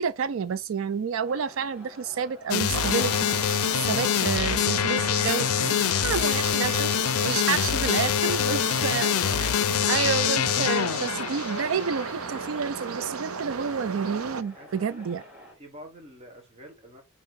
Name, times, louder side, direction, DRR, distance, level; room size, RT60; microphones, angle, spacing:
voice 1, 0.0-3.3 3.7-6.9 7.2-9.1 9.4-9.5 9.9-15.2, right 6 dB, 65° right, 0.4 m, -29 dB
sound 1, 1.2-15.5, left 1 dB, 5° right, 2.9 m, -49 dB
sound 2, 2.5-12.1, left 10 dB, 90° left, 0.4 m, -25 dB
sound 3, 2.7-14.4, right 5 dB, 90° right, 0.8 m, -35 dB
voice 2, 8.2-9.6 14.6-15.0 15.5-17.0, equal, 30° right, 1.5 m, -47 dB
8.7 x 2.9 x 4.6 m
head